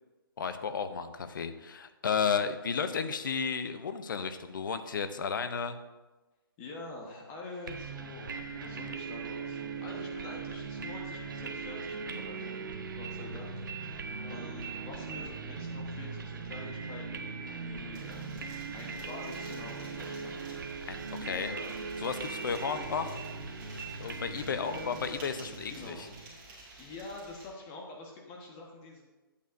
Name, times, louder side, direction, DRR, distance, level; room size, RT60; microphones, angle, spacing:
voice 1, 0.4-5.8 20.9-21.5 22.0-23.2 24.0-25.9, left 6 dB, 60° left, 10 dB, 0.8 m, -33 dB
voice 2, 6.6-12.6 12.9-18.4 18.7-20.4 20.7-20.9 21.2-21.8 22.4-22.7 24.5-25.3 25.7-26.1 26.8-29.0, left 2 dB, 25° left, -1 dB, 1.3 m, -46 dB
sound 1, 7.7-26.3, right 4 dB, 60° right, 0.8 m, -40 dB
sound 2, 17.9-27.5, right 2 dB, 25° right, 2.2 m, -52 dB
11.0 x 8.4 x 2.6 m, 1.2 s
figure-of-eight pair, 135°, 12 cm